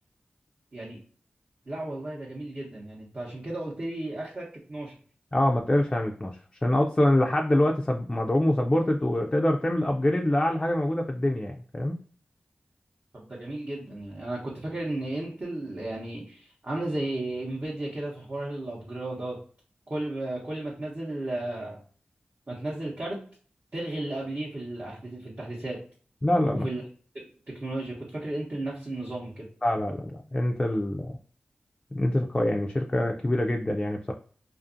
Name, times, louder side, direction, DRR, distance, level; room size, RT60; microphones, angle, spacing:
voice 1, 1.7-4.9 13.1-19.4 19.9-21.8 22.5-23.2 23.7-25.8 26.5-26.8 27.1-29.5, right 1 dB, 45° right, -5 dB, 0.8 m, -34 dB
voice 2, 5.3-6.4 6.6-12.0 26.2-26.7 29.6-31.2 31.9-34.1, left 1 dB, 20° left, 2 dB, 0.3 m, -25 dB
2.5 x 2.4 x 2.5 m, 0.43 s
cardioid pair, 45°, 4 cm